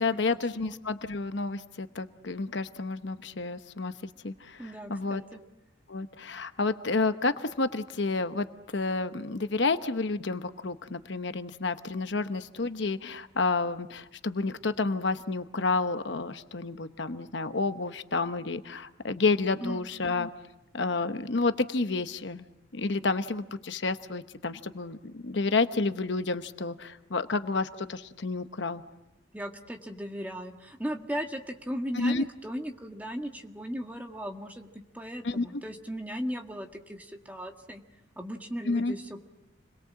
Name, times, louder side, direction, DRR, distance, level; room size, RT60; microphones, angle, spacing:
voice 1, 0.0-5.2 5.9-8.5 8.7-20.3 20.7-22.5 22.7-28.8 31.9-32.2 35.2-35.6 38.7-39.0, left 3 dB, 65° left, 10 dB, 1.0 m, -30 dB
voice 2, 4.6-5.4 19.6-19.9 29.3-37.8 38.2-39.3, equal, 10° right, 3 dB, 1.7 m, -37 dB
29.5 x 22.0 x 7.6 m, 0.94 s
head